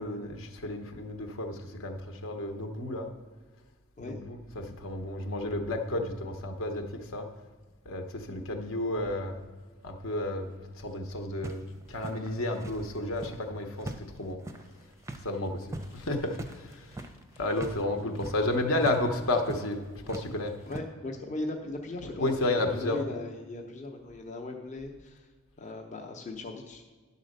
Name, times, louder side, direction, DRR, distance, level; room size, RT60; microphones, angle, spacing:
voice 1, 0.0-3.1 4.0-7.3 7.8-9.4 9.8-11.6 11.9-14.4 15.2-17.0 17.4-19.8 20.1-20.5 22.2-23.0, left 1 dB, 65° left, 4 dB, 1.0 m, -32 dB
sound 1, 11.4-13.5 13.8-17.8 18.1-18.5 18.8-19.0 19.4-19.7 20.1-20.8, right 2 dB, 15° right, 0.5 m, -42 dB
voice 2, 20.6-22.3 22.7-25.3 25.6-26.8, left 2 dB, 35° left, 1 dB, 0.8 m, -38 dB
10.5 x 4.1 x 6.5 m, 1.4 s
head